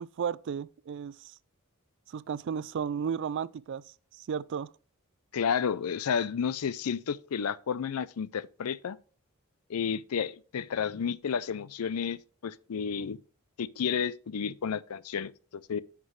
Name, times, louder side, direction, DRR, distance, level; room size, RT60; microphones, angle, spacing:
voice 1, 0.0-1.3 2.1-3.8 4.2-4.7, right 7 dB, 55° right, 0.3 m, -34 dB
voice 2, 5.3-9.0 9.7-13.2 13.6-15.8, left 7 dB, 90° left, 0.5 m, -31 dB
9.4 x 6.0 x 3.2 m
head